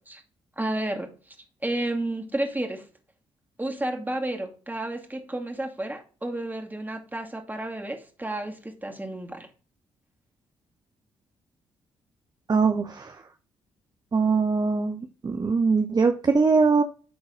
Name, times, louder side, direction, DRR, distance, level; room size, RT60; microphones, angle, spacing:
voice 1, 0.6-1.3 1.6-2.8 3.6-9.5, right 1 dB, 15° right, 2 dB, 2.3 m, -31 dB
voice 2, 12.5-13.2 14.1-16.8, right 4 dB, 30° right, 7 dB, 0.7 m, -22 dB
10.5 x 3.9 x 3.7 m, 0.37 s
hypercardioid pair, 40°, 13 cm